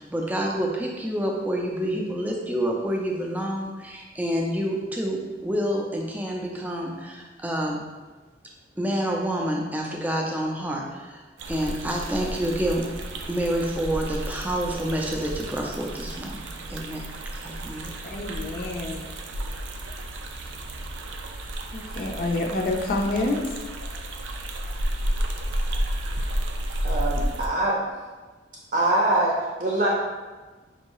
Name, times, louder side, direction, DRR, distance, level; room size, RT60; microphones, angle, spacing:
voice 1, 0.0-7.8 8.8-11.2 11.5-12.8 13.3-16.4 16.7-17.1 17.4-17.9, equal, 10° right, -1 dB, 0.4 m, -28 dB
sound 1, 11.4-27.5, right 1 dB, 85° right, 0.5 m, -32 dB
voice 2, 18.0-19.0 21.7-23.4, left 2 dB, 50° left, 1 dB, 0.5 m, -27 dB
voice 3, 26.8-27.8 28.7-29.9, right 1 dB, 50° right, -4 dB, 0.7 m, -23 dB
5.3 x 2.7 x 3.0 m, 1.3 s
head